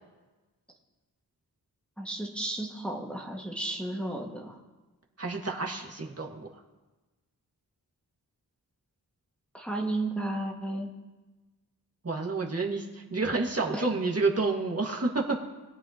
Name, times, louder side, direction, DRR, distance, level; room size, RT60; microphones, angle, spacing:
voice 1, 2.0-4.6 9.5-10.9 13.7-13.8, right 2 dB, 5° left, -2 dB, 1.8 m, -33 dB
voice 2, 5.2-6.5 12.0-15.2, right 3 dB, 40° right, -1 dB, 1.9 m, -29 dB
20.5 x 8.1 x 3.0 m, 1.2 s
cardioid pair, 60°, 38 cm